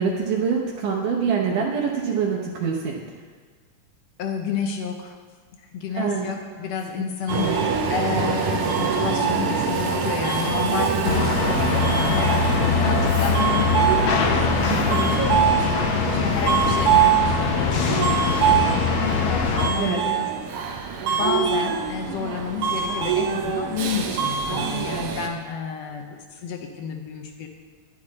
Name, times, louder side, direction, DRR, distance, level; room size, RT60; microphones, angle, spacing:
voice 1, 0.0-3.0 6.0-6.3 7.3-7.6 14.7-15.1 19.8-20.0, right 6 dB, 90° right, -3 dB, 2.6 m, -25 dB
voice 2, 4.2-5.1 5.7-12.4 12.7-14.5 14.9-20.3 21.1-27.5, left 6 dB, 70° left, 4 dB, 1.7 m, -31 dB
Subway metro underground, 7.3-25.3, right 7 dB, 65° right, 1.5 m, -24 dB
sound 1, 11.0-19.7, left 5 dB, 85° left, 1.1 m, -22 dB
10.5 x 10.0 x 4.2 m, 1.5 s
omnidirectional pair, 3.5 m